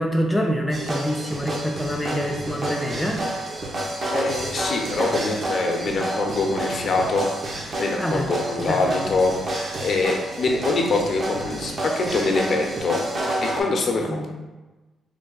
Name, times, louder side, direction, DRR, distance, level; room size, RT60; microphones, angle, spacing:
voice 1, 0.0-3.2 8.0-8.2 8.7-8.8 14.0-14.3, equal, 5° left, 0 dB, 0.4 m, -25 dB
sound 1, 0.7-13.6, right 1 dB, 40° right, 0.8 m, -29 dB
voice 2, 4.1-13.0 13.4-14.3, left 3 dB, 50° left, 1 dB, 0.7 m, -24 dB
3.3 x 2.5 x 3.9 m, 1.2 s
cardioid pair, 90°, 0 cm